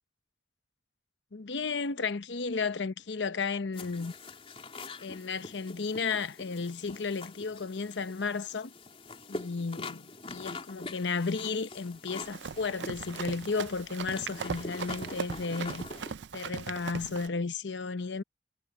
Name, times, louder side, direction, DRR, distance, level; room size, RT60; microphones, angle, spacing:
voice 1, 1.3-4.1 5.0-8.7 9.3-15.9 16.3-18.2, left 4 dB, 85° left, 0.8 m, -33 dB
sound 1, 3.7-16.1, left 3 dB, 35° left, 3.9 m, -44 dB
Run, 12.2-17.3, right 6 dB, 75° right, 0.5 m, -39 dB
head